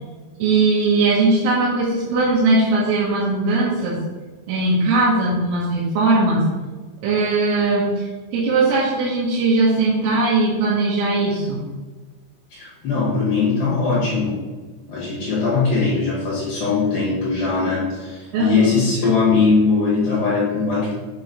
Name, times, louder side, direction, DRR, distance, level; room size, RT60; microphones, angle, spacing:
voice 1, 0.4-4.0 4.5-6.4 7.0-11.6 18.3-18.8, right 3 dB, 80° right, -8 dB, 3.6 m, -19 dB
voice 2, 12.5-14.4 14.9-20.9, left 4 dB, 60° left, -8 dB, 2.8 m, -20 dB
7.6 x 3.0 x 5.2 m, 1.3 s
omnidirectional pair, 5.6 m